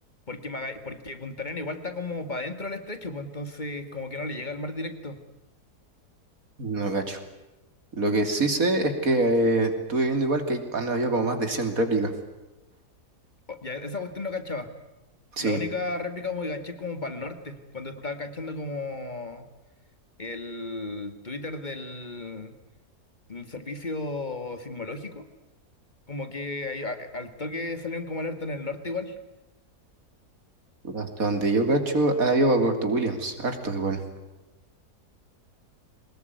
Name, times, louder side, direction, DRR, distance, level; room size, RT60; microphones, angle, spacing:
voice 1, 0.3-5.2 13.5-14.7 15.4-19.5 20.2-22.5 23.3-25.3 26.1-29.2, left 2 dB, 30° left, 9 dB, 2.2 m, -34 dB
voice 2, 6.6-7.2 8.0-12.1 15.4-15.6 30.8-34.0, right 2 dB, 60° right, 6 dB, 3.3 m, -24 dB
23.5 x 20.5 x 9.4 m, 1.0 s
omnidirectional pair, 1.7 m